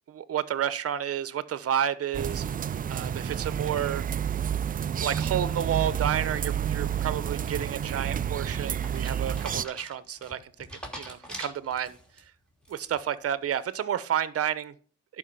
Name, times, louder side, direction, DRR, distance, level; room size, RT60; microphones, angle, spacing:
voice 1, 0.1-2.4 2.9-4.0 5.0-10.5 11.0-12.0 12.7-14.7, right 9 dB, 50° right, 0.9 m, -30 dB
sound 1, 2.1-9.6, right 9 dB, 30° right, 0.4 m, -30 dB
sound 2, 8.4-12.2 12.6-13.1, equal, 5° left, 3.1 m, -43 dB
11.0 x 5.3 x 5.5 m
cardioid pair, 90°, 30 cm